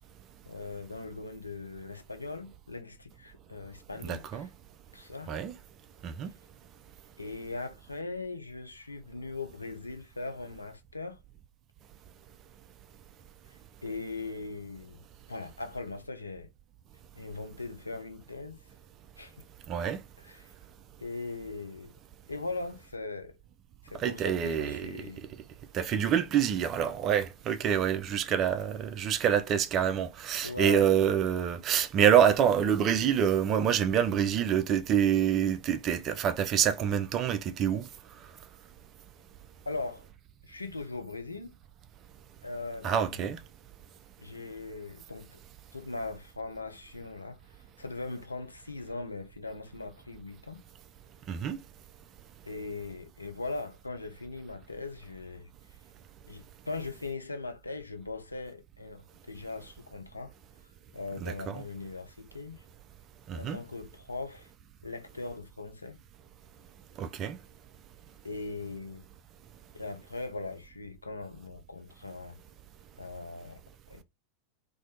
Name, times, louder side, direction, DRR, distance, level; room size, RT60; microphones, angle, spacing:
voice 1, 0.5-4.4 4.9-5.4 7.2-11.2 13.8-15.0 15.3-16.5 17.2-18.6 19.2-19.3 20.4-20.5 21.0-21.9 22.3-23.4 23.8-25.3 30.4-30.9 39.7-40.1 40.4-41.5 42.4-43.2 44.2-45.4 45.7-47.4 47.8-50.6 52.4-55.5 56.3-60.3 60.9-62.6 63.3-64.5 64.8-66.0 68.2-69.0 69.7-72.4 73.0-73.6 73.9-74.0, left 3 dB, 80° left, 0.4 m, -40 dB
voice 2, 4.0-4.5 5.3-5.6 6.0-6.3 19.7-20.0 24.0-25.0 25.7-37.8 42.8-43.4 51.3-51.6 61.2-61.6 63.3-63.6 67.0-67.4, right 9 dB, 30° right, 0.3 m, -26 dB
2.4 x 2.1 x 2.7 m
figure-of-eight pair, 90°, 0 cm